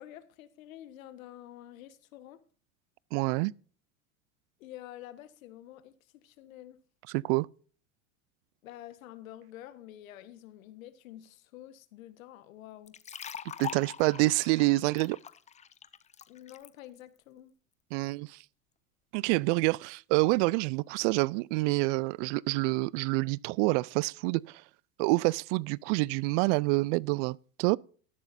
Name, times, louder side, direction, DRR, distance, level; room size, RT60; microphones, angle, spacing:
voice 1, 0.0-2.4 4.6-6.8 8.6-13.0 16.3-17.5, left 12 dB, 85° left, 1.4 m, -48 dB
voice 2, 3.1-3.5 7.1-7.5 13.6-15.2 17.9-18.4 19.1-24.6 25.0-27.8, right 23 dB, 60° right, 0.5 m, -27 dB
sound 1, 12.9-16.7, left 8 dB, 20° left, 0.5 m, -43 dB
13.0 x 11.0 x 2.6 m
supercardioid pair, 110°, 40 cm